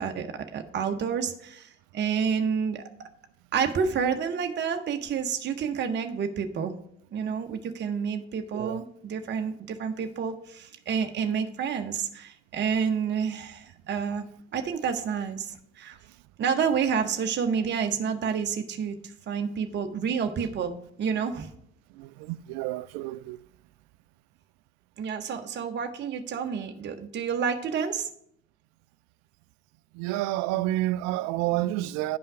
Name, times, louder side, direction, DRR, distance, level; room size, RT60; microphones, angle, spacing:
voice 1, 0.0-2.8 3.5-6.7 7.1-14.3 14.5-16.0 16.4-20.7 21.0-21.5 25.0-28.1, right 6 dB, 35° right, 0.8 m, -29 dB
voice 2, 22.0-23.4 30.0-32.2, right 16 dB, 55° right, 0.4 m, -29 dB
10.5 x 5.5 x 4.8 m
figure-of-eight pair, 55°, 33 cm